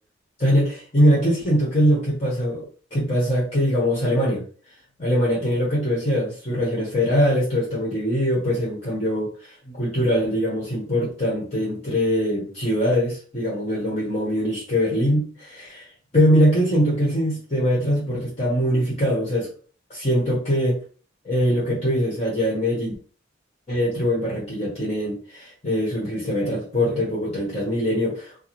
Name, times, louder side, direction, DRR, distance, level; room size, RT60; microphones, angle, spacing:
voice 1, 0.4-4.4 5.0-15.9 16.1-19.5 19.9-20.8 21.2-22.9 23.7-28.4, equal, 35° left, -5 dB, 1.3 m, -22 dB
4.7 x 2.2 x 3.0 m, 0.39 s
head